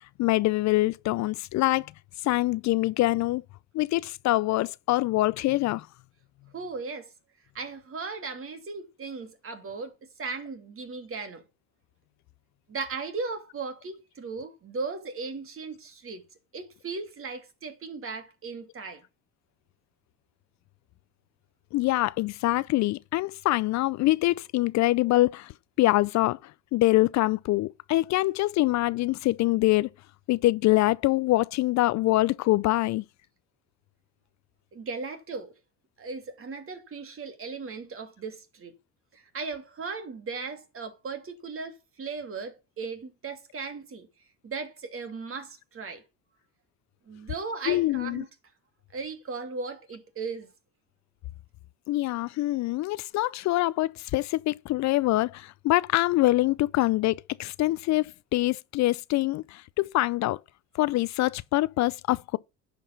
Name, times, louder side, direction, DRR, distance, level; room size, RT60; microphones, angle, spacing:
voice 1, 0.0-1.9 2.2-3.4 3.7-5.9 21.7-25.5 25.8-29.9 30.3-33.0 47.7-48.2 51.9-60.4 60.7-62.4, left 18 dB, 55° left, 0.5 m, -25 dB
voice 2, 6.5-7.1 7.5-11.4 12.7-16.2 16.5-19.0 34.7-35.5 36.0-38.7 39.1-44.1 44.4-46.0 47.1-48.3 48.9-50.5, right 4 dB, 40° right, 2.7 m, -37 dB
9.8 x 5.3 x 5.4 m
supercardioid pair, 75°, 33 cm